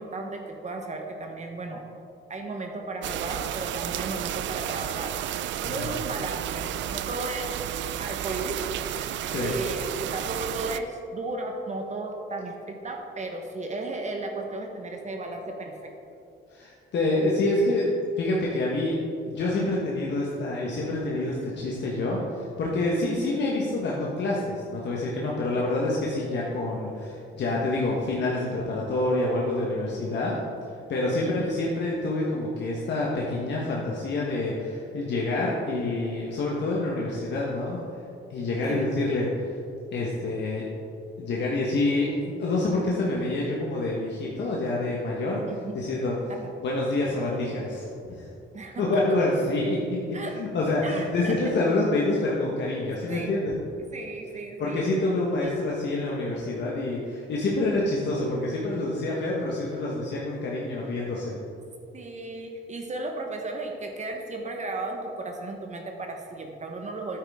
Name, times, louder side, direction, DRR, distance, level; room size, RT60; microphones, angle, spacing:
voice 1, 0.0-1.8 2.3-7.6 8.0-9.1 9.4-15.7 23.1-23.3 31.2-31.5 38.7-38.8 45.5-45.7 46.4-46.5 48.5-49.0 50.1-50.3 50.8-51.3 53.1-53.3 53.9-54.9 55.4-55.5 61.9-67.2, right 2 dB, 35° right, 2 dB, 1.1 m, -35 dB
sound 1, 3.0-10.8, right 11 dB, 70° right, 0.4 m, -32 dB
voice 2, 16.5-30.4 30.9-37.8 38.3-39.5 39.9-40.7 41.2-45.4 45.7-46.2 46.6-48.3 48.8-53.6 54.6-61.3, left 2 dB, 60° left, -4 dB, 1.3 m, -27 dB
9.1 x 9.0 x 3.6 m, 2.7 s
cardioid pair, 90°, 20 cm